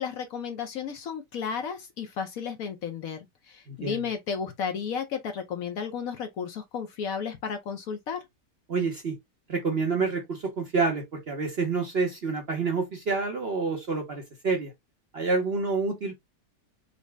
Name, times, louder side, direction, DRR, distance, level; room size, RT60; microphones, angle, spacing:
voice 1, 0.0-8.2, left 6 dB, 65° left, 1.0 m, -33 dB
voice 2, 3.7-4.0 8.7-9.2 9.5-14.7 15.1-16.1, right 4 dB, 45° right, 0.9 m, -28 dB
4.0 x 2.0 x 3.3 m
omnidirectional pair, 1.8 m